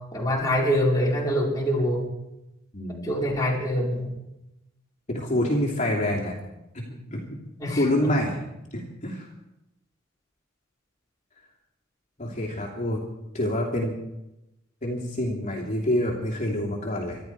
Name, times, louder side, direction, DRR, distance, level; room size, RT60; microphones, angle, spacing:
voice 1, 0.1-2.1 3.0-4.1 7.6-8.1, equal, 20° left, -4 dB, 4.7 m, -24 dB
voice 2, 2.7-3.1 5.1-6.3 6.7-7.4 7.7-8.4 8.7-9.3 12.2-13.0 13.3-13.9 14.8-17.2, left 1 dB, 35° left, -2 dB, 2.8 m, -27 dB
25.0 x 12.0 x 4.7 m, 0.90 s
head